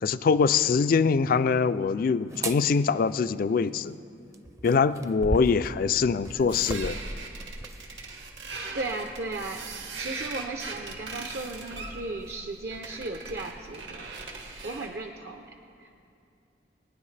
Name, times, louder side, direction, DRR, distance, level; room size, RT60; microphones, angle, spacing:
voice 1, 0.0-3.9 4.6-7.0, left 5 dB, 50° left, 15 dB, 0.3 m, -23 dB
sound 1, 2.3-2.6 4.3-7.8 8.5-8.7, right 1 dB, 15° right, 0.5 m, -35 dB
sound 2, 6.5-15.0, right 3 dB, 85° right, 1.7 m, -40 dB
voice 2, 8.7-9.6 10.0-14.1 14.6-16.0, right 2 dB, 60° right, 4 dB, 0.6 m, -36 dB
24.5 x 10.0 x 3.3 m, 2.6 s
head